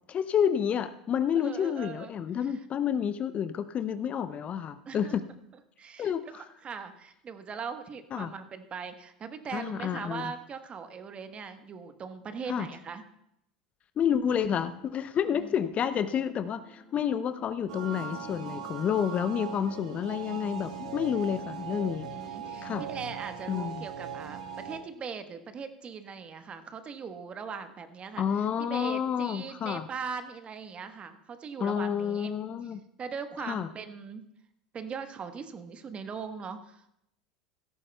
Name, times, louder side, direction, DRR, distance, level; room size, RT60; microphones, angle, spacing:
voice 1, 0.1-5.2 6.0-6.4 8.1-8.3 9.5-10.3 12.5-12.7 14.0-22.1 22.6-22.8 23.5-23.9 28.2-29.9 31.6-32.8 33.4-33.7, left 8 dB, 35° left, 12 dB, 0.6 m, -29 dB
voice 2, 1.4-2.1 2.4-2.5 4.9-5.2 5.8-13.0 15.3-15.6 22.1-28.2 28.7-32.3 33.0-34.2 34.7-36.9, right 6 dB, 30° right, 9 dB, 1.1 m, -40 dB
sound 1, 15.4-22.5, left 2 dB, 15° left, 1.1 m, -53 dB
sound 2, 17.7-24.8, right 7 dB, 70° right, 1.4 m, -39 dB
16.5 x 14.0 x 2.3 m, 0.78 s
figure-of-eight pair, 80°, 4 cm